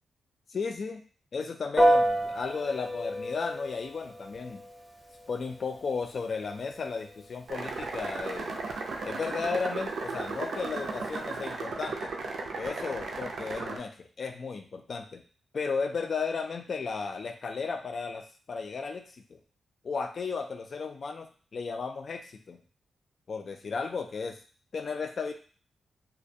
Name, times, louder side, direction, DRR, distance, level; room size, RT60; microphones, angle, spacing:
voice 1, 0.5-1.0 1.3-4.6 5.3-8.6 9.0-12.1 12.4-15.2 15.5-19.4 19.8-22.6 23.3-24.4 24.7-25.3, left 5 dB, 55° left, 6 dB, 0.3 m, -34 dB
Piano, 1.8-11.5, equal, ahead, 0.5 m, -32 dB
sound 1, 7.5-13.8, right 3 dB, 80° right, 0.4 m, -35 dB
2.3 x 2.1 x 2.6 m, 0.40 s
cardioid pair, 105°, 0 cm